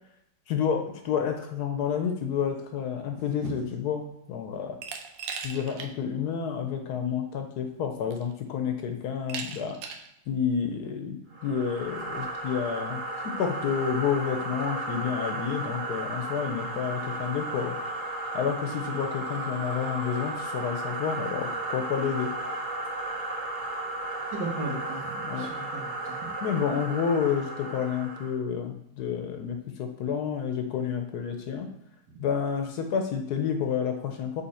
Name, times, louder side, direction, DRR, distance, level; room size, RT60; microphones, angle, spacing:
voice 1, 0.5-4.8 5.4-9.8 10.3-17.7 18.3-22.3 25.3-25.5 26.4-31.7 32.2-34.4, left 7 dB, 65° left, 5 dB, 1.1 m, -30 dB
Glass, 4.8-5.9 6.3-6.4 7.5-7.6 8.1-8.5 9.3-10.1, right 6 dB, 85° right, 1.4 m, -38 dB
sound 1, 11.3-28.4, right 2 dB, 35° right, 0.9 m, -34 dB
voice 2, 24.3-26.3 32.1-32.2, right 2 dB, 65° right, -1 dB, 1.8 m, -36 dB
5.6 x 4.3 x 4.2 m, 0.77 s
omnidirectional pair, 1.9 m